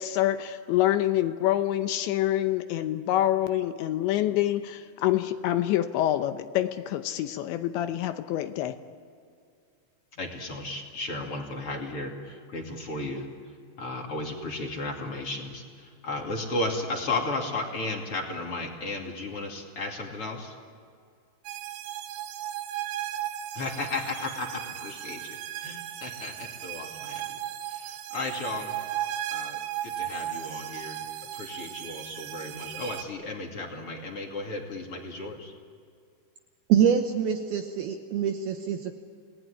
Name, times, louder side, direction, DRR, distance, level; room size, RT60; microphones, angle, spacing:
voice 1, 0.0-8.8, left 13 dB, 80° left, 9 dB, 3.0 m, -26 dB
voice 2, 10.1-13.3 13.8-20.5 23.5-27.4 27.7-28.8 29.3-31.0 31.3-35.5, left 2 dB, 35° left, 1 dB, 2.6 m, -34 dB
sound 1, 21.5-33.0, right 12 dB, 90° right, 3.7 m, -36 dB
voice 3, 36.7-38.9, right 8 dB, 70° right, 5 dB, 2.4 m, -25 dB
28.5 x 19.0 x 10.0 m, 2.2 s
omnidirectional pair, 5.5 m